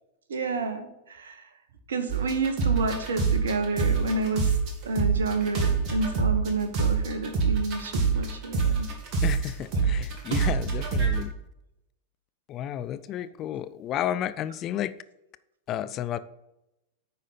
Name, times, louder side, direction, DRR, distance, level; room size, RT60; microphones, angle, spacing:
voice 1, 0.3-1.5 1.9-4.5 4.8-8.9 9.8-9.9 10.3-10.4, right 3 dB, 65° right, 1.1 m, -30 dB
sound 1, 2.1-4.7 5.0-11.2, right 5 dB, 40° right, 2.0 m, -25 dB
voice 2, 9.2-11.3 12.5-14.9 15.7-16.2, left 11 dB, 35° left, 0.4 m, -32 dB
9.6 x 4.3 x 5.3 m
figure-of-eight pair, 90°, 0 cm